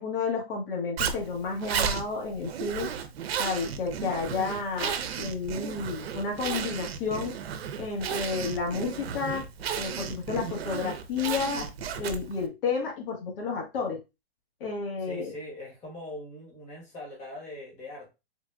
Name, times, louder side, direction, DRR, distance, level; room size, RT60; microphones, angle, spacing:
voice 1, 0.0-2.9 3.4-7.3 7.8-9.4 9.7-11.7 12.0-14.0 14.6-15.3, left 5 dB, 60° left, 0 dB, 1.4 m, -31 dB
Zipper (clothing), 1.0-12.4, right 7 dB, 70° right, 0.6 m, -33 dB
voice 2, 15.0-18.1, left 1 dB, 20° left, -2 dB, 1.3 m, -41 dB
3.9 x 2.5 x 2.3 m, 0.25 s
hypercardioid pair, 130°, 31 cm